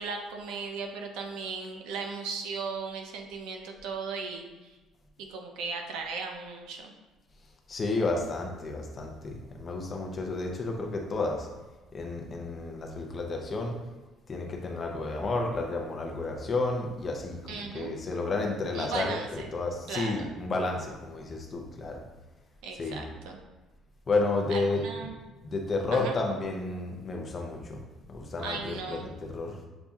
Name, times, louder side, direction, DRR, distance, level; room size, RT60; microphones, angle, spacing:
voice 1, 0.0-4.5 5.2-6.9 17.5-17.9 18.7-19.5 19.9-20.3 22.6-23.4 24.5-25.1 25.9-26.2 28.4-29.1, right 4 dB, 85° right, 3 dB, 0.6 m, -36 dB
voice 2, 7.7-11.5 11.9-13.7 14.3-22.0 22.8-23.1 24.1-25.1 25.4-27.8 28.1-29.6, left 3 dB, 25° left, 1 dB, 0.5 m, -31 dB
6.9 x 2.6 x 2.4 m, 1.2 s
cardioid pair, 170°, 0 cm